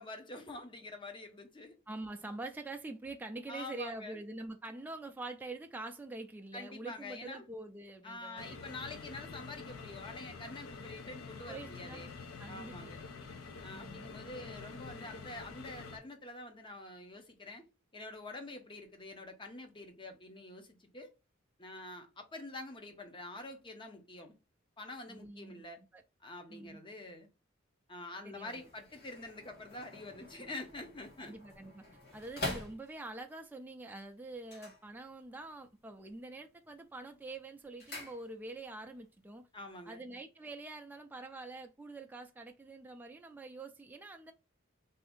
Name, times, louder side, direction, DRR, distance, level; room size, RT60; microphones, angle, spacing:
voice 1, 0.0-1.8 3.5-4.2 6.5-7.4 8.0-12.1 12.5-13.0 13.6-17.6 17.9-21.1 21.6-24.3 24.8-25.8 26.2-27.3 27.9-31.3 39.5-40.0, left 2 dB, 25° left, 0.7 m, -46 dB
voice 2, 1.9-8.6 11.5-12.1 12.4-12.9 13.7-14.0 25.1-25.6 25.9-26.0 26.5-26.8 28.2-28.6 31.2-31.8 32.1-39.5 39.9-44.3, right 2 dB, 10° right, 0.3 m, -45 dB
sound 1, 8.4-16.0, left 4 dB, 90° left, 0.6 m, -47 dB
sound 2, 28.3-33.3 34.4-35.5 35.8-36.3 36.7-38.7 39.0-39.1, left 2 dB, 55° left, 1.4 m, -46 dB
2.7 x 2.5 x 3.4 m
head